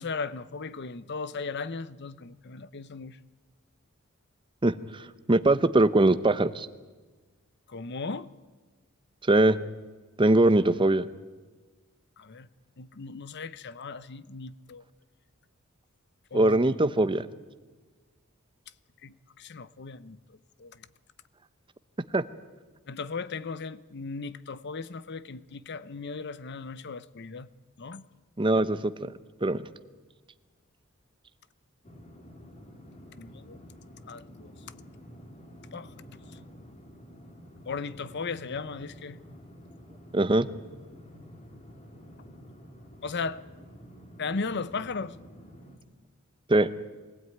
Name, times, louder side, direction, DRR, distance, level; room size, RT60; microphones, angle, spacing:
voice 1, 0.0-3.2 7.7-8.3 12.2-12.5 12.8-14.8 16.3-16.6 19.0-20.2 20.6-20.8 22.9-27.5 27.8-28.0 33.2-33.6 34.1-34.5 35.7-35.9 37.7-39.2 43.0-43.4 44.2-45.2, left 4 dB, 55° left, 0.7 m, -36 dB
voice 2, 4.6-6.7 9.3-9.6 10.2-11.1 16.3-17.3 22.1-22.2 28.4-29.1 29.4-29.6 40.1-40.5 46.5-46.7, right 2 dB, 25° right, 0.7 m, -22 dB
sound 1, 31.8-45.8, equal, 35° left, 2.9 m, -49 dB
23.0 x 16.0 x 9.3 m
head